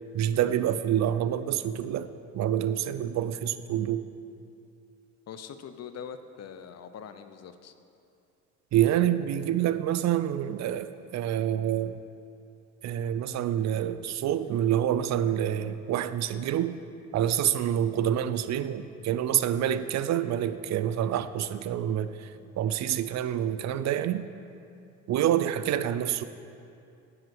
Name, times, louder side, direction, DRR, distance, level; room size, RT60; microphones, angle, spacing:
voice 1, 0.1-2.1 2.3-4.0 8.7-12.0 12.8-16.8 17.1-22.1 22.6-24.2 25.1-26.2, right 10 dB, 65° right, 13 dB, 0.5 m, -27 dB
voice 2, 5.3-7.7, left 7 dB, 55° left, 10 dB, 0.6 m, -43 dB
7.9 x 5.5 x 7.7 m, 2.7 s
cardioid pair, 90°, 30 cm